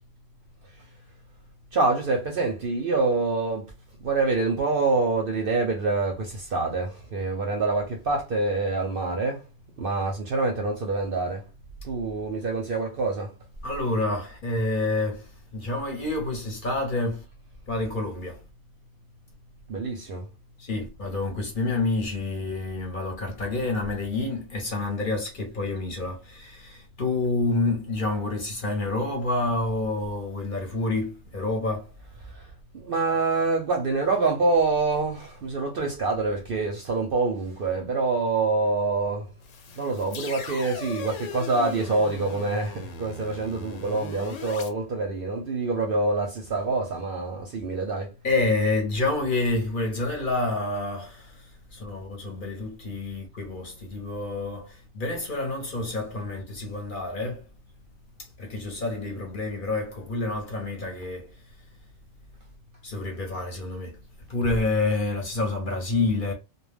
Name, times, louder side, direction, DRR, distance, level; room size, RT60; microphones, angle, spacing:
voice 1, 1.7-3.7 4.0-9.4 9.8-11.4 11.8-13.3 19.7-20.2 32.7-39.3 39.8-48.1, right 3 dB, 60° right, 0.6 m, -26 dB
voice 2, 13.6-17.2 17.7-18.4 20.6-31.9 48.2-51.4 51.7-57.5 58.4-61.3 62.8-64.0 64.3-66.3, left 2 dB, 45° left, 0.8 m, -28 dB
sound 1, 39.4-44.7, left 4 dB, 80° left, 1.0 m, -38 dB
2.2 x 2.2 x 3.2 m
omnidirectional pair, 1.3 m